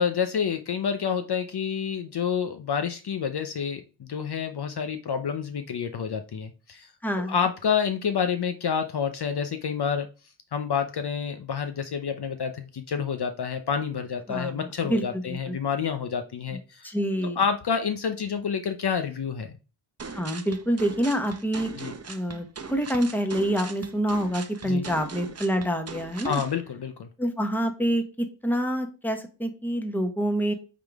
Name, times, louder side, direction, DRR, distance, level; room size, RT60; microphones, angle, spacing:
voice 1, 0.0-6.9 7.3-10.1 10.5-16.9 17.4-19.6 21.8-21.9 24.6-24.8 26.2-27.1, left 7 dB, 50° left, 8 dB, 0.7 m, -28 dB
voice 2, 7.0-7.5 14.3-15.6 16.5-16.6 16.8-17.4 20.1-21.7 22.1-26.4 27.2-30.5, equal, 5° left, 6 dB, 1.1 m, -27 dB
sound 1, 20.0-26.5, right 5 dB, 30° right, 0.8 m, -40 dB
8.6 x 3.8 x 3.5 m, 0.34 s
wide cardioid pair, 100°, 50 cm